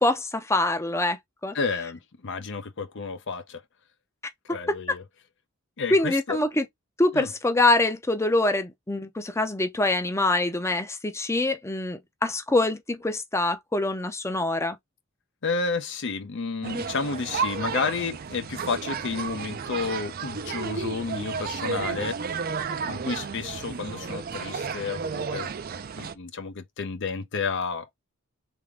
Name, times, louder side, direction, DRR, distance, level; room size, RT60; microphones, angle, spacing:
voice 1, 0.0-1.2 1.4-1.5 5.9-6.6 7.0-14.8, left 2 dB, 15° left, 0.6 m, -24 dB
voice 2, 1.5-3.6 4.5-5.0 5.8-6.4 7.1-7.3 15.4-22.2 22.8-25.5 26.0-28.0, left 4 dB, 55° left, 0.6 m, -31 dB
sound 1, 16.6-26.1, right 5 dB, 45° right, 0.4 m, -32 dB
3.4 x 3.4 x 3.6 m
head